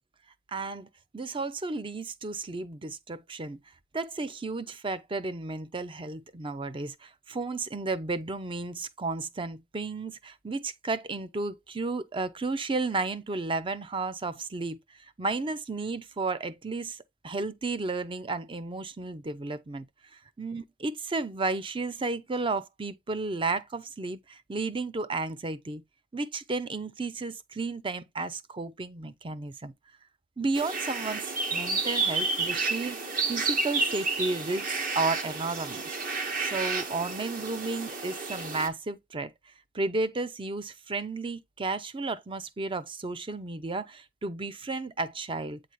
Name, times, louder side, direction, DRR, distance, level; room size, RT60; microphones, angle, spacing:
voice 1, 0.5-0.9 1.1-3.6 3.9-14.8 15.2-19.9 20.1-25.8 26.1-29.7 30.4-35.8 36.4-39.3 39.7-45.6, right 3 dB, 30° right, 0.6 m, -33 dB
sound 1, 30.5-38.7, right 3 dB, 50° right, 1.5 m, -31 dB
8.4 x 4.0 x 3.1 m
head